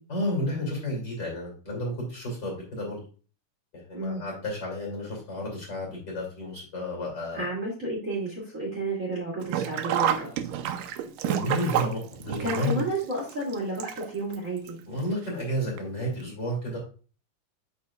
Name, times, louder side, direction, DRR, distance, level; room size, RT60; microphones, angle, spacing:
voice 1, 0.1-3.0 3.7-7.5 11.2-12.8 14.9-16.8, equal, 35° left, -1 dB, 3.1 m, -31 dB
voice 2, 7.3-10.3 12.4-14.8, right 2 dB, 25° right, -4 dB, 2.5 m, -31 dB
Sink (filling or washing), 9.4-14.4 14.7-14.8 15.8-15.9 16.2-16.3, right 10 dB, 85° right, 2.3 m, -29 dB
8.3 x 5.6 x 2.4 m, 0.37 s
omnidirectional pair, 3.8 m